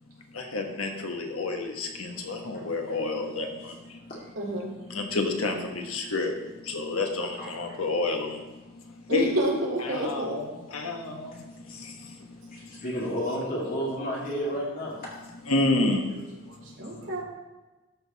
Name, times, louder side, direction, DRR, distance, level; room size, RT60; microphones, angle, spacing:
voice 1, 0.3-3.7 4.9-6.3 6.7-8.4 9.1-11.3 15.5-16.0, left 2 dB, 85° left, 3 dB, 1.3 m, -29 dB
voice 2, 2.5-3.0 3.6-3.7 4.1-4.2 7.2-7.8 11.3-11.4 12.5-15.1, equal, 45° left, -5 dB, 2.1 m, -33 dB
voice 3, 4.4-4.7 9.1-10.3 16.8-17.2, right 1 dB, 65° right, -3 dB, 2.2 m, -29 dB
13.0 x 4.7 x 4.1 m, 1.1 s
head